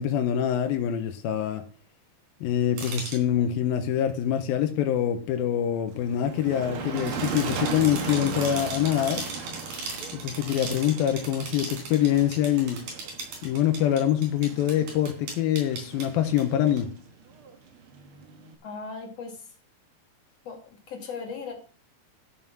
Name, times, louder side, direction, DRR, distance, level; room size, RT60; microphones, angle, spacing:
voice 1, 0.0-1.6 2.4-9.3 10.1-12.8 13.4-16.9, left 10 dB, 85° left, 2.7 m, -25 dB
sound 1, 2.8-3.2 6.9-16.0 16.4-16.5 16.8-16.9, right 3 dB, 85° right, 5.4 m, -37 dB
Motor vehicle (road), 5.9-18.5, right 5 dB, 60° right, 1.5 m, -37 dB
voice 2, 18.6-19.5 20.4-21.5, left 5 dB, 50° left, 2.9 m, -38 dB
13.0 x 5.7 x 6.1 m
omnidirectional pair, 4.2 m